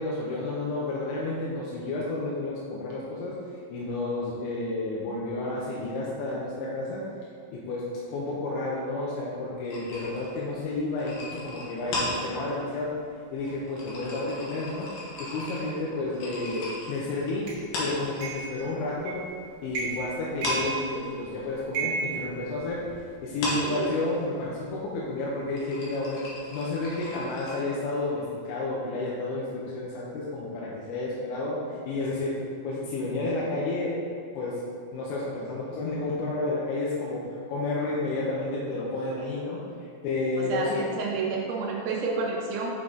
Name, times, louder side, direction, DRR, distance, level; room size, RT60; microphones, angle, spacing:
voice 1, 0.0-3.3 3.7-7.0 7.5-13.0 13.3-14.9 15.2-17.5 17.8-19.3 19.6-22.8 23.2-26.2 26.5-32.4 32.6-34.0 34.3-34.6 34.9-39.6 40.0-41.0, left 2 dB, 85° left, -5 dB, 3.2 m, -31 dB
sound 1, 9.6-18.7 18.9-20.0 20.3-27.5, left 1 dB, 65° left, 2.9 m, -36 dB
sound 2, 17.5-17.6 18.2-18.5 19.1-19.4 19.7-20.1 20.4-21.2 21.7-23.0, right 5 dB, 55° right, 2.3 m, -33 dB
voice 2, 23.5-23.9 40.4-42.7, right 4 dB, 80° right, -1 dB, 2.3 m, -30 dB
6.8 x 6.0 x 3.7 m, 2.3 s
omnidirectional pair, 5.2 m